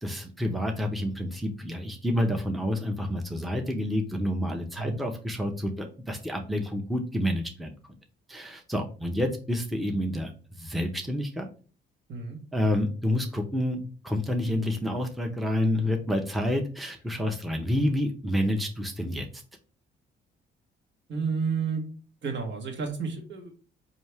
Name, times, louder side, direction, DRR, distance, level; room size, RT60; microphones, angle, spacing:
voice 1, 0.0-7.7 8.3-10.3 10.6-11.5 12.5-19.3, left 1 dB, ahead, 3 dB, 0.7 m, -28 dB
voice 2, 12.1-12.4 21.1-21.9 22.2-23.5, right 5 dB, 65° right, 2 dB, 1.3 m, -31 dB
4.3 x 2.8 x 3.3 m, 0.38 s
cardioid pair, 90°, 20 cm